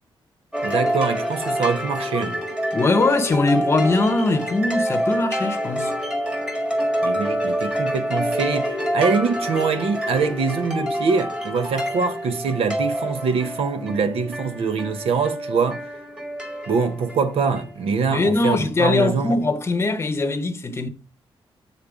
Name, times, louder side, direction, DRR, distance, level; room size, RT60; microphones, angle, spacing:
sound 1, 0.5-18.4, equal, 10° right, 1.5 m, -27 dB
voice 1, 0.6-2.4 7.0-15.8 16.7-19.4, right 5 dB, 85° right, 0.9 m, -24 dB
voice 2, 2.7-5.9 18.1-20.9, left 2 dB, 25° left, 0.8 m, -21 dB
8.4 x 4.2 x 4.9 m
wide cardioid pair, 155°, 10 cm